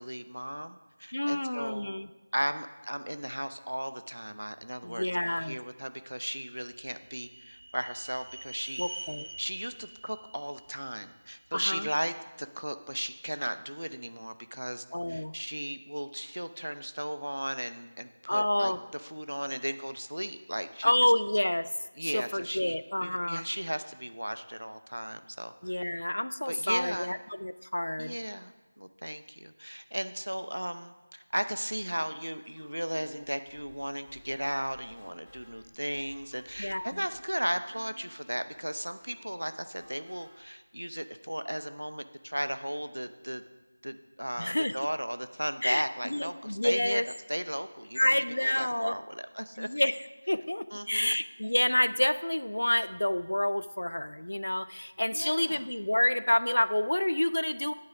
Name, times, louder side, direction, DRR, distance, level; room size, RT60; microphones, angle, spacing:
voice 1, 0.0-1.9 2.3-8.8 9.4-21.1 22.0-25.8 26.5-27.1 28.0-28.5 28.8-43.4 43.8-47.0 47.3-49.7 50.7-51.1 55.1-55.6, equal, 85° right, 11 dB, 0.7 m, -36 dB
voice 2, 1.1-2.1 4.8-5.6 8.8-9.3 11.5-11.9 14.9-15.3 18.3-18.8 20.8-21.7 22.0-23.4 25.6-28.2 36.6-37.0 44.4-44.7 45.6-45.8 46.1-47.1 47.9-49.0 49.6-57.7, left 1 dB, 70° left, 14 dB, 0.5 m, -28 dB
sound 1, 6.4-11.6, right 1 dB, 50° right, 0.6 m, -46 dB
sound 2, 31.8-40.4, equal, 5° right, 3.3 m, -57 dB
9.7 x 8.8 x 5.1 m, 1.2 s
figure-of-eight pair, 170°, 0 cm